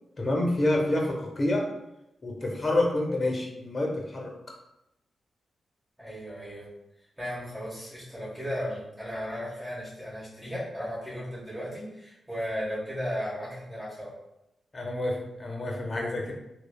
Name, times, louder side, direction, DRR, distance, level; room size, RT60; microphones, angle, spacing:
voice 1, 0.2-1.6 2.2-4.3 14.7-16.3, left 1 dB, 40° left, 0 dB, 0.7 m, -28 dB
voice 2, 6.0-6.7 7.2-14.2, equal, 15° right, -9 dB, 1.3 m, -35 dB
3.0 x 2.1 x 2.2 m, 0.87 s
supercardioid pair, 50°, 0 cm